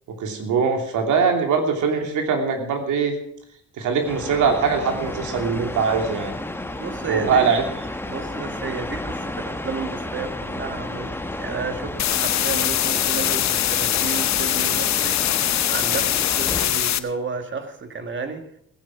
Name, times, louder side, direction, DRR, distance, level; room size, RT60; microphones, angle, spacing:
voice 1, 0.2-3.1 3.8-6.3 7.1-7.6, right 5 dB, 80° right, 4 dB, 3.1 m, -22 dB
sound 1, 4.0-16.7, left 1 dB, 5° left, 1.2 m, -32 dB
voice 2, 6.8-7.6 8.0-18.5, right 4 dB, 40° right, 7 dB, 2.2 m, -32 dB
sound 2, 12.0-17.0, left 12 dB, 65° left, 0.9 m, -22 dB
16.5 x 9.7 x 6.1 m, 0.71 s
cardioid pair, 90°, 30 cm